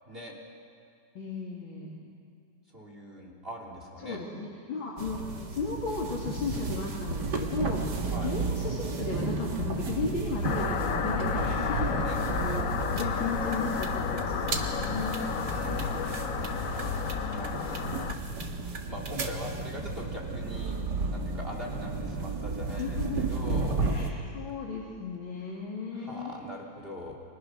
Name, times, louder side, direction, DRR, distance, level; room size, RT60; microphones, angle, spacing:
voice 1, 1.2-2.0 4.0-5.2 5.5-15.3 22.7-23.2 23.8-26.3, left 4 dB, 85° left, -4 dB, 3.6 m, -35 dB
voice 2, 2.7-4.2 8.1-8.3 11.3-12.2 15.3-16.2 17.3-17.8 18.9-23.8 25.9-27.1, equal, 30° right, 0 dB, 3.5 m, -42 dB
sound 1, 5.0-24.1, right 3 dB, 60° right, 2.4 m, -33 dB
sound 2, 10.4-18.2, left 6 dB, 50° left, 1.2 m, -31 dB
29.5 x 25.0 x 6.5 m, 2.3 s
omnidirectional pair, 2.1 m